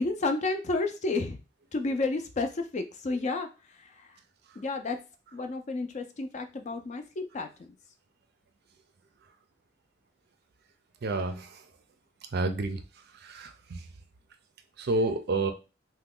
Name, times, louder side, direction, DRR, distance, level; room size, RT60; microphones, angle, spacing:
voice 1, 0.0-1.4 1.7-3.5 3.8-4.1 4.6-5.0 5.3-7.7, left 3 dB, 40° left, 7 dB, 0.4 m, -31 dB
voice 2, 11.0-11.5 12.3-12.8 13.2-13.8 14.8-15.5, right 2 dB, 55° right, 7 dB, 0.4 m, -29 dB
2.9 x 2.1 x 3.7 m, 0.30 s
head